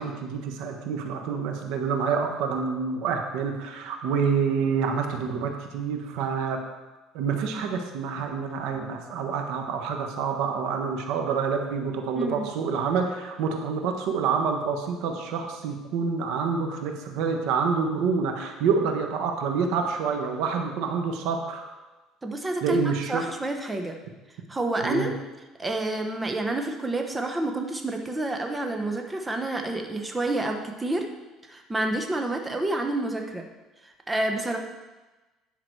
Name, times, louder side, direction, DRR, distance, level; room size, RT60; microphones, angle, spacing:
voice 1, 0.0-6.6 7.1-21.7 22.6-23.2 24.8-25.1, right 5 dB, 75° right, 4 dB, 1.3 m, -27 dB
voice 2, 12.2-12.5 22.2-23.9 24.5-25.1 25.6-31.1 31.4-33.5 33.8-34.6, right 2 dB, 15° right, 3 dB, 1.0 m, -29 dB
10.5 x 6.0 x 4.6 m, 1.1 s
cardioid pair, 120°, 0 cm